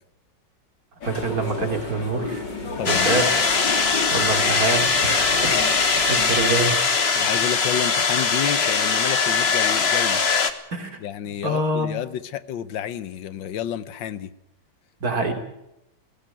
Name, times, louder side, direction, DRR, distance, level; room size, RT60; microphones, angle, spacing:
sound 1, 1.0-6.8, left 3 dB, 75° left, 3.8 m, -32 dB
voice 1, 1.0-2.4 2.9-3.3 4.1-7.1 10.7-11.0 11.4-12.0 15.0-15.3, right 2 dB, 50° right, 5 dB, 3.7 m, -26 dB
voice 2, 2.8-3.2 7.2-10.2 11.0-14.3, left 10 dB, 90° left, 15 dB, 1.6 m, -30 dB
sound 2, 2.9-10.5, left 5 dB, 35° left, 1.5 m, -21 dB
17.5 x 17.5 x 9.1 m, 0.83 s
omnidirectional pair, 2.0 m